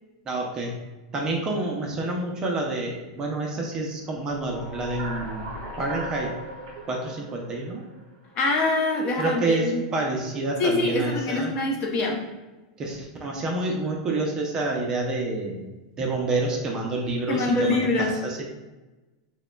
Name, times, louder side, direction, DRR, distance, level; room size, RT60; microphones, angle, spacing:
voice 1, 0.3-0.8 1.1-5.5 5.8-6.3 6.9-7.9 9.2-11.5 12.8-15.6 16.0-18.4, right 2 dB, 20° right, 0 dB, 0.5 m, -28 dB
sound 1, 4.2-8.5, right 1 dB, 55° right, 1.4 m, -38 dB
voice 2, 8.4-9.8 10.6-12.2 17.3-18.1, left 2 dB, 35° left, 1 dB, 0.6 m, -24 dB
6.1 x 2.1 x 2.2 m, 1.1 s
supercardioid pair, 160°, 3 cm